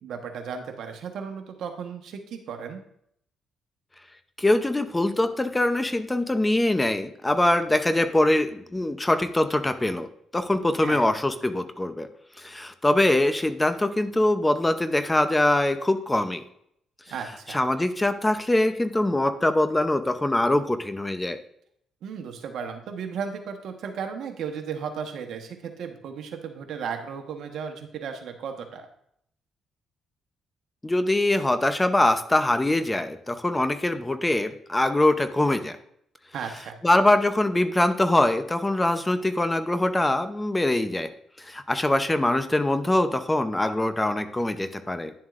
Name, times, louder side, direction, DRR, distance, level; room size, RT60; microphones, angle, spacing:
voice 1, 0.0-2.8 10.8-11.1 17.1-17.6 22.0-28.9 36.3-36.8, right 6 dB, 75° right, 5 dB, 1.2 m, -35 dB
voice 2, 4.4-10.1 10.3-12.1 12.4-16.4 17.5-21.4 30.8-35.8 36.8-41.1 41.4-45.1, left 1 dB, 15° left, 10 dB, 0.6 m, -23 dB
10.5 x 7.3 x 2.5 m, 0.70 s
cardioid pair, 90°, 0 cm